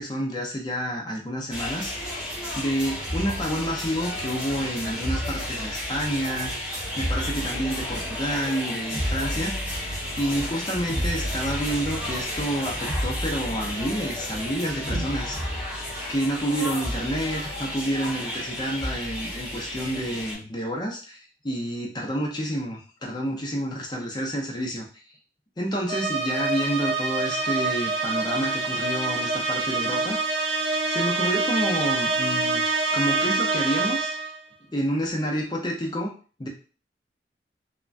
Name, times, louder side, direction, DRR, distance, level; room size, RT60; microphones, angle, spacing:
voice 1, 0.0-1.9 2.6-6.7 7.0-9.5 10.2-15.6 16.1-24.9 25.6-30.2 30.8-32.6 32.9-34.3 34.7-36.1 36.4-36.5, equal, 25° left, -1 dB, 0.6 m, -29 dB
sound 1, 1.5-20.4, equal, 5° right, 1.0 m, -31 dB
sound 2, 25.9-34.4, right 3 dB, 80° right, 0.5 m, -26 dB
3.3 x 2.1 x 2.5 m, 0.37 s
head